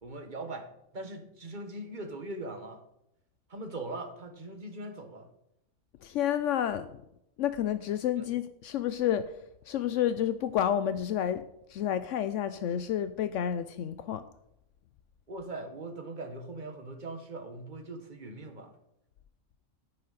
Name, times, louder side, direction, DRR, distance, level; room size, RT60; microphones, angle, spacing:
voice 1, 0.0-2.8 3.5-5.3 8.2-8.3 15.3-18.7, right 2 dB, 40° right, 7 dB, 1.4 m, -41 dB
voice 2, 6.0-6.9 7.4-9.2 9.7-11.4 11.7-14.2, left 10 dB, 75° left, 12 dB, 0.9 m, -30 dB
10.0 x 10.0 x 4.1 m, 0.80 s
omnidirectional pair, 1.3 m